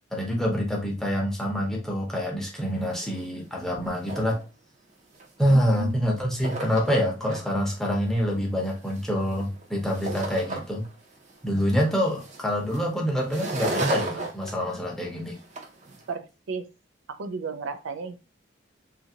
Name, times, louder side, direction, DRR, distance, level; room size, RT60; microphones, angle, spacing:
voice 1, 0.1-4.4 5.4-10.8 11.4-15.4, equal, ahead, -2 dB, 0.7 m, -26 dB
sound 1, 2.6-2.7 2.9-3.2 3.6-4.4 5.1-5.9 6.2-7.4 7.9-10.9 11.3-16.0, right 2 dB, 40° right, 0.6 m, -34 dB
voice 2, 5.5-6.0 16.1-16.7 17.1-18.2, right 4 dB, 90° right, 10 dB, 0.4 m, -34 dB
2.7 x 2.5 x 2.7 m, 0.30 s
head